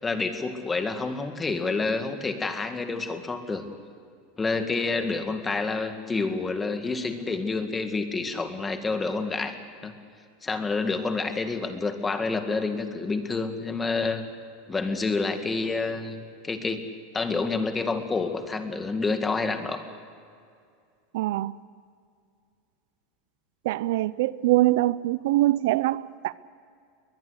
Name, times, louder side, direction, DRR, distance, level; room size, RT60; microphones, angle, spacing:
voice 1, 0.0-3.6 4.4-9.5 9.8-9.9 10.4-14.2 14.7-16.8 17.1-19.8, left 3 dB, 15° left, 2.1 m, -28 dB
voice 2, 21.1-21.5 23.6-26.3, right 16 dB, 75° right, 0.6 m, -23 dB
21.5 x 21.0 x 8.2 m
supercardioid pair, 135°, 0 cm